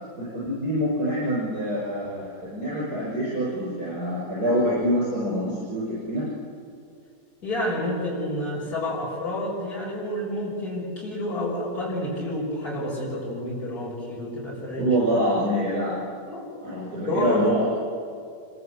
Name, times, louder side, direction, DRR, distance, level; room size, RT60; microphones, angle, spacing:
voice 1, 0.2-6.3 14.8-16.0 16.6-17.7, equal, 80° right, -6 dB, 7.8 m, -25 dB
voice 2, 7.4-15.0 16.3-16.6 17.1-17.4, left 1 dB, 75° left, -4 dB, 7.0 m, -29 dB
26.5 x 24.5 x 8.3 m, 2.4 s
omnidirectional pair, 1.6 m